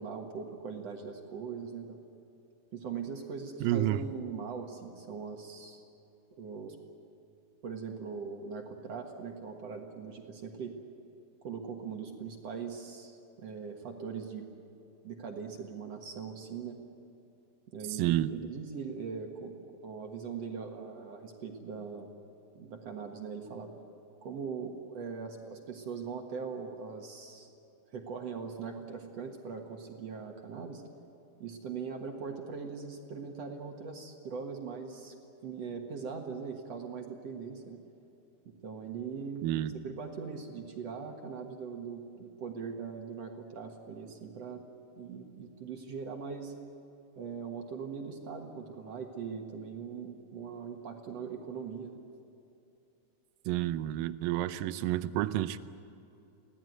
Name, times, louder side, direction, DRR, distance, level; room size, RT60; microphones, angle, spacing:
voice 1, 0.0-2.0 2.7-5.8 6.4-6.8 7.6-10.8 11.4-14.5 15.0-16.8 17.7-22.1 22.6-23.7 24.2-27.5 27.9-30.8 31.4-35.1 35.4-37.8 38.6-39.5 39.8-44.6 44.9-46.5 47.2-52.0, right 5 dB, 55° right, 2 dB, 2.1 m, -41 dB
voice 2, 3.6-4.0 18.0-18.3 39.4-39.7 53.5-55.6, right 14 dB, 75° right, 13 dB, 2.2 m, -29 dB
24.0 x 17.0 x 9.3 m, 2.7 s
omnidirectional pair, 4.5 m